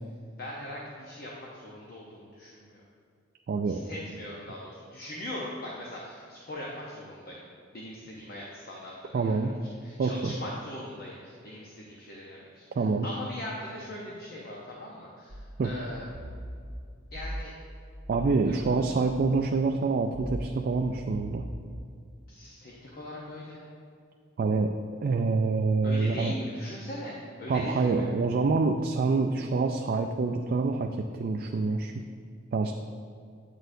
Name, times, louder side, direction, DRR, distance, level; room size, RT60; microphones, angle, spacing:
voice 1, 0.4-2.8 3.7-7.4 7.7-9.5 9.8-16.1 17.1-17.5 18.5-18.7 22.3-23.6 25.8-28.1, left 1 dB, 50° left, -3 dB, 0.8 m, -40 dB
voice 2, 3.5-3.8 9.1-9.5 10.0-10.4 12.8-13.1 15.6-15.7 18.1-21.4 24.4-24.7 25.0-26.3 27.5-31.9 32.5-32.7, right 4 dB, 50° right, 3 dB, 0.3 m, -26 dB
sound 1, 15.3-19.2 20.1-21.4, equal, 75° right, 1.0 m, -41 dB
8.9 x 6.3 x 2.6 m, 2.3 s
head